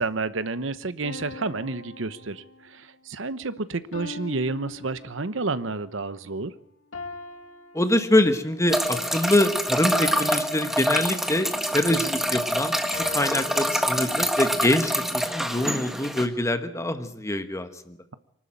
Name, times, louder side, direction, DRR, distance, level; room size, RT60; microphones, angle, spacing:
voice 1, 0.0-6.5, right 3 dB, 75° right, 14 dB, 1.0 m, -30 dB
sound 1, 1.0-2.8 3.9-5.6 6.9-8.6 9.9-11.4 12.9-13.7, left 3 dB, 85° left, 2.8 m, -41 dB
voice 2, 7.7-18.0, left 1 dB, 15° left, 9 dB, 1.4 m, -25 dB
sound 2, 8.7-16.3, equal, ahead, 1.6 m, -26 dB
24.0 x 12.5 x 8.9 m, 0.78 s
head